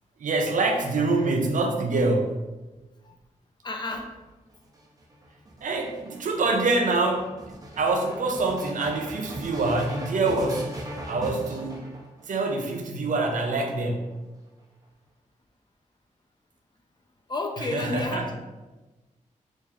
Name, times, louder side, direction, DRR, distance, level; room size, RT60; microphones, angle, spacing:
voice 1, 0.2-2.4 5.6-10.7 11.1-11.9 12.3-14.2 17.6-18.2, right 3 dB, 75° right, 3 dB, 0.5 m, -25 dB
voice 2, 3.6-4.1 17.3-18.4, left 2 dB, 35° left, 2 dB, 0.4 m, -31 dB
sound 1, 4.5-12.5 13.3-14.1, equal, 25° right, 0.5 m, -39 dB
3.5 x 2.6 x 3.2 m, 1.1 s
wide cardioid pair, 135°, 14 cm